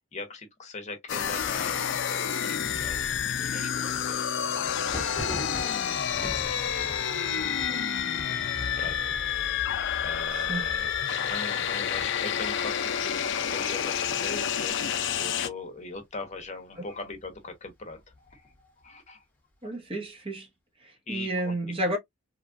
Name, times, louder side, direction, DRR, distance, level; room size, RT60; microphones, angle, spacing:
voice 1, 0.1-3.1 3.3-4.7 5.1-7.1 7.6-9.2 9.6-19.2 21.1-21.6, left 3 dB, 35° left, 0.9 m, -41 dB
sound 1, 1.1-15.5, left 8 dB, 60° left, 0.4 m, -29 dB
Thunder, 4.8-14.3 14.5-15.2 15.5-16.5 16.9-18.6, left 1 dB, 10° left, 1.2 m, -43 dB
voice 2, 19.6-20.5 20.8-22.0, right 1 dB, 25° right, 0.9 m, -31 dB
3.0 x 2.3 x 2.5 m
head